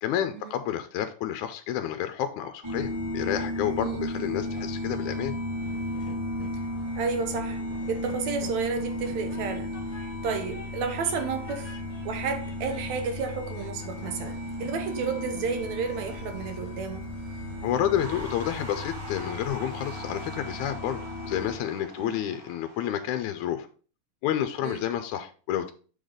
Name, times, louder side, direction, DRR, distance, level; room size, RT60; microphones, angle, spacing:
voice 1, 0.0-5.3 17.6-21.0 21.3-23.7 24.2-25.7, left 10 dB, 85° left, 2.0 m, -30 dB
sound 1, 2.6-21.6, left 1 dB, 15° right, 1.2 m, -35 dB
Train, 5.6-19.5, left 3 dB, 55° left, 2.3 m, -47 dB
voice 2, 7.0-7.6 7.9-9.8 10.2-11.7 12.0-17.1 22.0-22.2 24.6-24.9, right 5 dB, 75° right, 2.3 m, -31 dB
sound 2, 18.0-23.2, right 3 dB, 45° right, 1.6 m, -43 dB
7.0 x 4.0 x 5.0 m
omnidirectional pair, 3.4 m